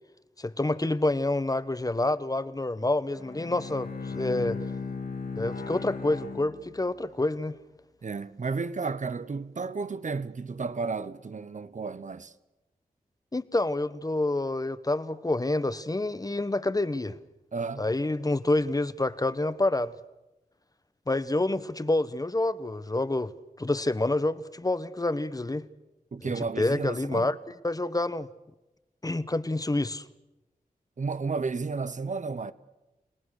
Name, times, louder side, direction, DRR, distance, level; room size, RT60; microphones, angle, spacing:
voice 1, 0.4-4.6 5.4-7.5 13.3-17.2 17.8-19.9 21.1-23.3 23.6-25.6 26.2-27.3 27.6-28.3 29.0-30.0, left 2 dB, 25° left, 1.0 m, -28 dB
Bowed string instrument, 3.2-7.2, left 4 dB, 85° left, 2.9 m, -37 dB
voice 2, 8.0-12.3 17.5-17.9 26.1-27.3 31.0-32.5, right 4 dB, 55° right, 1.0 m, -32 dB
29.5 x 18.5 x 6.5 m
wide cardioid pair, 65°, 15 cm